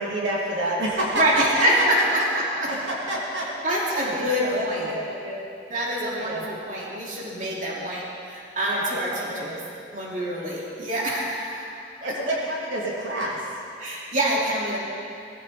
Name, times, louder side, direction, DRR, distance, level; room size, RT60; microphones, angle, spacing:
voice 1, 0.0-1.6 2.7-3.5 3.9-5.4 6.1-6.4 8.6-9.6 12.0-13.4, right 1 dB, 80° right, -4 dB, 2.9 m, -29 dB
voice 2, 1.1-2.7 3.4-4.9 5.7-9.6 9.9-11.7 12.0-12.1 13.8-14.8, right 1 dB, 45° right, -5 dB, 3.1 m, -26 dB
20.0 x 15.0 x 4.4 m, 2.5 s
head